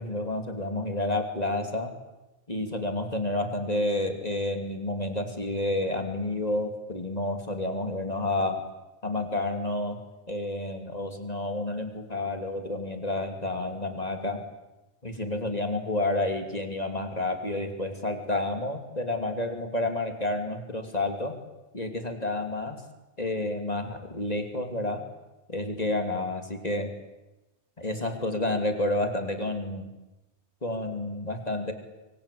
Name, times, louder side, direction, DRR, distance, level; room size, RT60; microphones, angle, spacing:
voice 1, 0.0-1.9 2.5-8.7 9.0-10.0 10.3-14.5 15.0-21.4 21.7-22.8 23.2-25.0 25.5-27.0 27.8-29.9 30.6-31.7, left 2 dB, 35° left, 5 dB, 3.0 m, -30 dB
25.0 x 24.5 x 8.6 m, 1.0 s
omnidirectional pair, 1.2 m